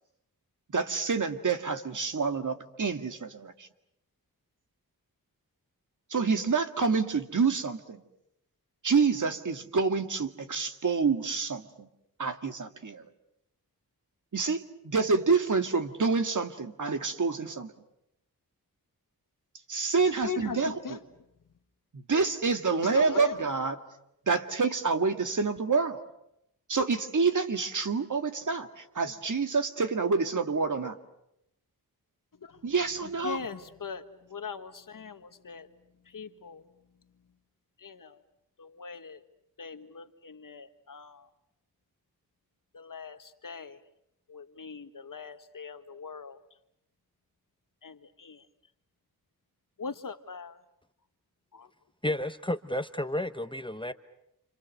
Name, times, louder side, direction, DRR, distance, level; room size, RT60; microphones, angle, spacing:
voice 1, 0.7-3.7 6.1-8.0 8.8-11.9 12.2-13.1 14.3-17.7 19.7-21.0 21.9-23.8 24.3-26.0 26.7-31.0 32.6-33.4, right 4 dB, 55° right, 7 dB, 2.1 m, -28 dB
voice 2, 20.0-21.1 22.8-23.8 32.3-32.6 33.0-35.7 36.0-36.6 37.8-38.2 38.6-39.2 39.6-41.3 42.7-43.8 44.3-46.4 47.8-48.5 49.8-50.6 51.5-51.7, left 5 dB, 60° left, 9 dB, 1.6 m, -41 dB
voice 3, 52.0-53.9, left 1 dB, 15° left, 10 dB, 1.1 m, -31 dB
29.5 x 27.0 x 6.7 m, 0.81 s
wide cardioid pair, 80°, 37 cm